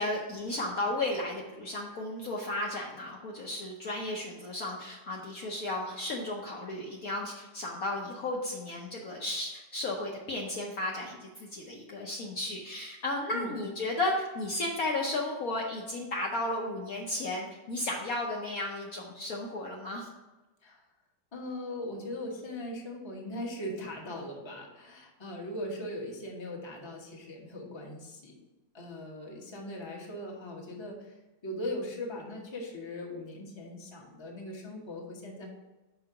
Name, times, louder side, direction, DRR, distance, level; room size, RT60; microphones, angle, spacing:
voice 1, 0.0-20.1, left 2 dB, 60° left, -1 dB, 1.1 m, -34 dB
voice 2, 21.3-28.4 28.7-31.1 31.4-35.5, left 1 dB, 20° left, -1 dB, 0.9 m, -39 dB
5.6 x 4.5 x 5.7 m, 1.1 s
omnidirectional pair, 2.0 m